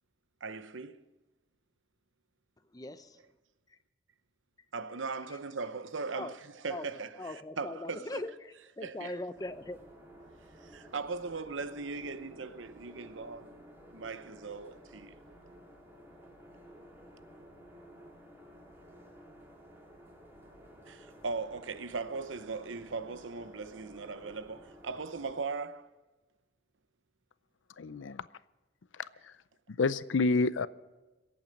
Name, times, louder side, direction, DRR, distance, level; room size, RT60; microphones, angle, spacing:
voice 1, 0.4-1.0 4.7-6.4 6.6-7.1 7.6-8.2 8.8-9.1 10.6-13.5 13.9-15.1 20.9-25.9, right 4 dB, 85° right, 0.8 m, -39 dB
voice 2, 2.6-3.4 3.7-3.8 5.3-5.5 6.1-6.4 6.7-9.8, left 2 dB, 20° left, 0.6 m, -41 dB
sound 1, 9.3-25.4, equal, 15° right, 2.7 m, -54 dB
voice 3, 27.8-28.3 28.9-29.3 29.7-30.7, left 3 dB, 85° left, 0.5 m, -29 dB
22.5 x 8.7 x 5.3 m
head